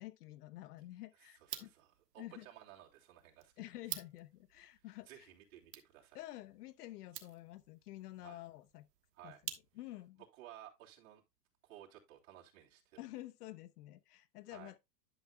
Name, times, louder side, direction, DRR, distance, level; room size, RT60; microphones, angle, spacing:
voice 1, 0.0-1.7 2.2-2.5 3.6-5.3 6.1-8.9 9.2-9.4 9.7-10.2 13.0-14.8, left 16 dB, 70° left, 1.0 m, -50 dB
sound 1, 1.4-10.1, right 11 dB, 80° right, 1.4 m, -51 dB
voice 2, 1.5-1.9 2.1-3.5 5.1-6.2 8.2-8.4 9.2-9.4 10.4-11.2 11.6-13.0 14.5-14.7, right 12 dB, 60° right, 3.1 m, -56 dB
11.0 x 6.7 x 2.3 m
supercardioid pair, 140°, 48 cm